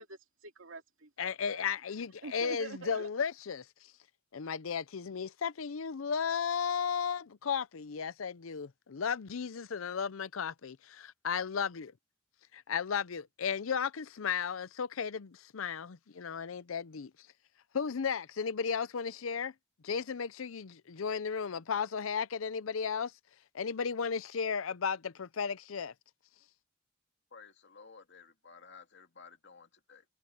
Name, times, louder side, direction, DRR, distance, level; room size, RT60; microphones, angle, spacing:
voice 1, 0.0-1.6 2.2-3.1, right 3 dB, 80° right, 2.6 m, -46 dB
voice 2, 1.2-3.7 4.3-11.9 12.5-17.1 17.7-19.5 19.8-23.1 23.5-25.9, left 6 dB, 90° left, 0.6 m, -34 dB
voice 3, 27.3-30.1, left 5 dB, 60° left, 2.5 m, -54 dB
head